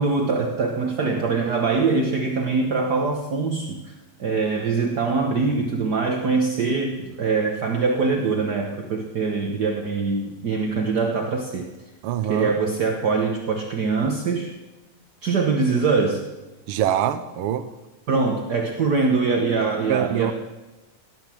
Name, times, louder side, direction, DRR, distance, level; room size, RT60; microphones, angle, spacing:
voice 1, 0.0-3.9 4.2-11.7 12.2-14.5 15.2-16.2 18.1-20.3, right 4 dB, 55° right, 3 dB, 1.1 m, -23 dB
voice 2, 12.0-12.6 16.7-17.7 19.9-20.3, right 10 dB, 80° right, 10 dB, 1.2 m, -24 dB
18.0 x 10.5 x 7.7 m, 1.1 s
omnidirectional pair, 3.5 m